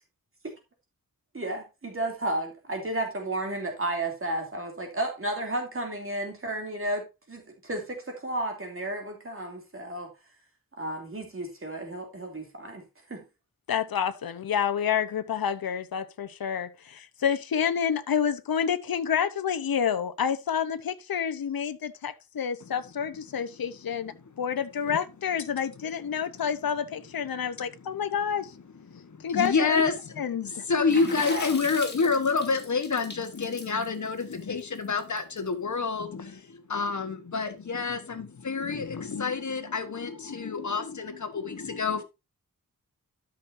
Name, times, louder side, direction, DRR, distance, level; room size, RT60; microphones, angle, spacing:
voice 1, 1.3-10.1 10.8-12.8 13.1-13.2 31.1-31.5, right 1 dB, 35° right, 2.9 m, -33 dB
voice 2, 13.7-28.5 29.2-29.8 30.2-30.6, left 8 dB, 80° left, 0.9 m, -29 dB
voice 3, 28.9-42.0, left 4 dB, 55° left, 1.4 m, -28 dB
Water / Splash splatter, 30.9-35.4, left 2 dB, 30° left, 3.0 m, -41 dB
13.0 x 6.5 x 2.7 m
wide cardioid pair, 130°, 35 cm